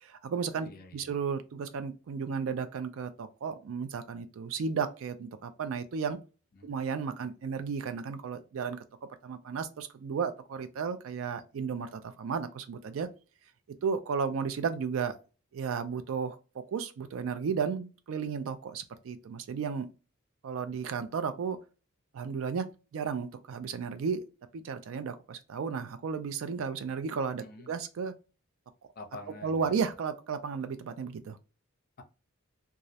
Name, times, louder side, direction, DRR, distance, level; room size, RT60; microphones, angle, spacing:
voice 1, 0.0-6.2 6.6-13.1 13.8-15.2 15.5-19.9 20.4-21.6 22.1-22.7 22.9-24.2 24.5-28.1 29.4-31.4, right 6 dB, 70° right, 0.3 m, -34 dB
voice 2, 0.6-1.1 6.5-6.7 27.4-27.7 29.0-29.8, left 3 dB, 45° left, 0.5 m, -47 dB
2.3 x 2.0 x 2.7 m
head